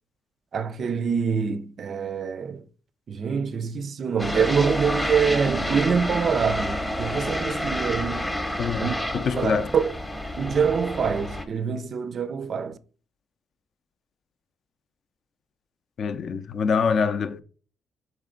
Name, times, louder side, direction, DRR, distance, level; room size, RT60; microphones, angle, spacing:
voice 1, 0.5-2.6 3.1-8.3 8.8-8.9 9.3-9.9 10.4-12.8, right 6 dB, 50° right, 0.3 m, -25 dB
sound 1, 4.2-11.4, left 1 dB, 5° left, 0.7 m, -29 dB
voice 2, 8.6-9.7 16.0-17.4, left 6 dB, 55° left, 0.4 m, -25 dB
4.3 x 3.3 x 3.7 m
cardioid pair, 105°, 0 cm